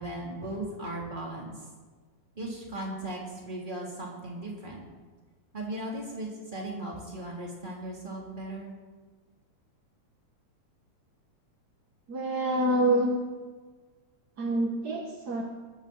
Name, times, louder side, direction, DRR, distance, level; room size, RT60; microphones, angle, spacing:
voice 1, 0.0-1.5 2.3-4.8 5.5-8.7, right 1 dB, 15° right, -3 dB, 3.2 m, -37 dB
voice 2, 12.1-13.2 14.4-15.4, right 1 dB, 50° right, 0 dB, 1.2 m, -26 dB
21.0 x 7.4 x 7.1 m, 1.4 s
omnidirectional pair, 3.4 m